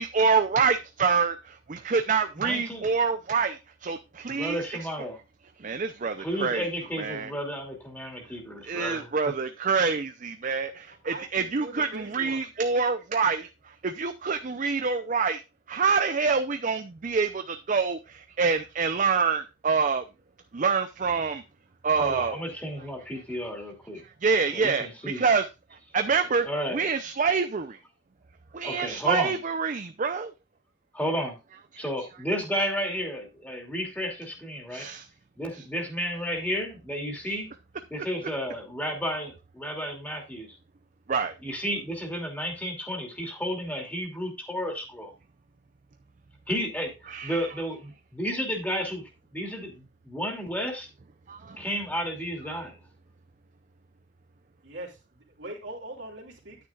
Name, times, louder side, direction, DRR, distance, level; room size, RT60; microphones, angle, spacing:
voice 1, 0.0-4.9 5.6-6.6 7.0-7.3 8.6-13.5 13.8-15.4 15.7-20.0 20.5-21.4 21.8-22.4 24.2-25.4 25.9-26.5 26.7-27.8 28.5-30.3 34.7-35.0 41.1-41.3 47.1-47.3 51.3-51.6, right 5 dB, 40° right, 0.5 m, -26 dB
voice 2, 2.3-2.8 4.3-5.2 6.2-9.3 21.9-24.0 24.5-25.2 26.4-26.8 28.6-29.4 30.9-31.4 31.8-34.9 35.4-37.5 37.9-40.5 41.4-45.1 46.5-46.9 47.2-50.9 51.6-52.8, equal, 10° left, 2.7 m, -32 dB
voice 3, 11.0-12.5 54.6-56.6, right 1 dB, 75° right, 3.0 m, -41 dB
10.5 x 9.4 x 2.4 m
head